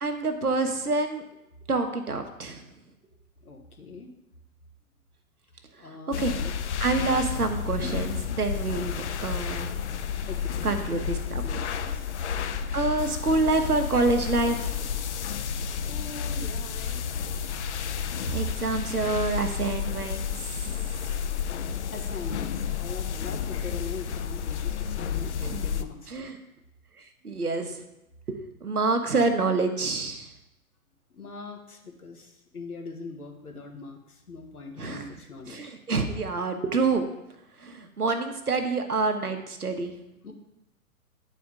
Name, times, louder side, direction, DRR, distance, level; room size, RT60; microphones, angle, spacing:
voice 1, 0.0-1.2 1.7-2.6 5.8-6.4 6.8-9.7 10.6-11.4 12.7-14.9 18.3-20.5 25.4-26.4 27.2-27.8 28.3-30.3 34.8-35.0 35.5-37.1 37.6-39.9, right 3 dB, 90° right, 5 dB, 1.0 m, -27 dB
voice 2, 3.4-4.1 5.8-6.6 10.3-10.8 11.4-12.0 15.7-17.2 18.2-18.4 21.9-26.3 31.1-35.7 40.2-40.3, left 3 dB, 80° left, 2 dB, 1.4 m, -41 dB
sound 1, 6.1-25.8, left 7 dB, 50° left, 0.5 m, -31 dB
9.4 x 4.3 x 3.7 m, 0.87 s
figure-of-eight pair, 115°, 44 cm